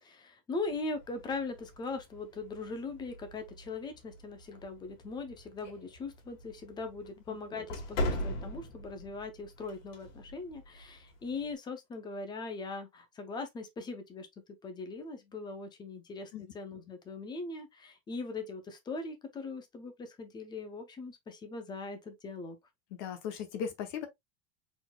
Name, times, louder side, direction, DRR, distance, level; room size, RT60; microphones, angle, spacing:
voice 1, 0.0-14.3 14.6-22.6, left 3 dB, 10° left, 0.5 m, -40 dB
sound 1, 0.6-11.5, left 1 dB, 80° left, 2.0 m, -42 dB
voice 2, 23.0-24.1, left 7 dB, 45° left, 0.9 m, -37 dB
4.1 x 3.9 x 2.2 m
supercardioid pair, 170°, 40 cm